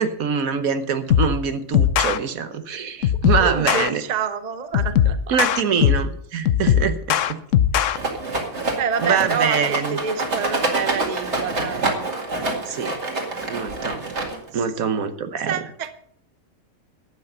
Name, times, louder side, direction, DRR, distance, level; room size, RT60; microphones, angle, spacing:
voice 1, 0.0-4.0 5.3-7.4 9.0-10.0 12.6-13.0 13.5-14.0 14.5-15.6, right 6 dB, 75° right, 10 dB, 1.4 m, -24 dB
sound 1, 1.1-1.4 1.7-2.2 3.0-3.9 4.7-6.1 6.5-8.0, left 10 dB, 65° left, 1.0 m, -19 dB
voice 2, 3.4-5.4 5.7-5.8 8.8-9.6 9.9-12.1 14.5-14.6 15.4-15.9, right 7 dB, 35° right, 10 dB, 0.8 m, -28 dB
Rattle, 7.9-14.6, right 2 dB, 50° right, 2.4 m, -26 dB
12.0 x 8.4 x 6.6 m, 0.65 s
omnidirectional pair, 1.5 m